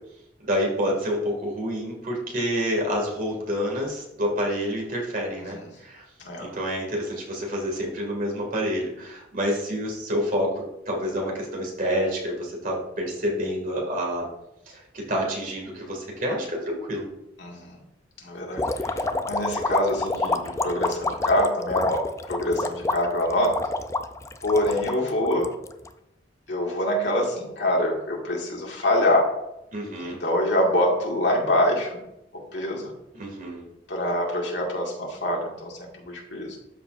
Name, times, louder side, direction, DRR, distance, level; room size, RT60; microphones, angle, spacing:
voice 1, 0.4-6.0 6.4-14.2 14.7-17.1 18.9-19.2 29.7-30.2 33.2-33.7, equal, 50° right, -2 dB, 2.3 m, -28 dB
voice 2, 5.3-5.7 6.2-6.5 17.4-17.8 18.2-23.6 24.4-25.5 26.5-29.3 30.0-32.0 32.3-32.9 33.9-36.6, left 1 dB, 75° left, -1 dB, 2.0 m, -25 dB
sound 1, 18.6-25.9, left 2 dB, 15° left, 0.4 m, -28 dB
12.5 x 4.6 x 2.6 m, 0.86 s
head